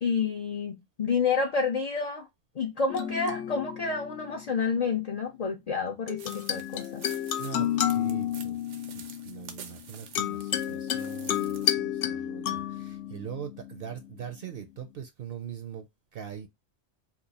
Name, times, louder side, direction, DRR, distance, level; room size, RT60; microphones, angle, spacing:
voice 1, 0.0-2.3 2.5-7.0, left 5 dB, 45° left, 0.5 m, -29 dB
sound 1, 2.9-4.7 6.1-14.6, left 10 dB, 75° left, 0.9 m, -31 dB
sound 2, 6.2-11.7, right 7 dB, 85° right, 1.0 m, -48 dB
voice 2, 7.4-8.6 8.9-16.5, right 8 dB, 60° right, 0.7 m, -41 dB
2.9 x 2.4 x 3.9 m
omnidirectional pair, 1.2 m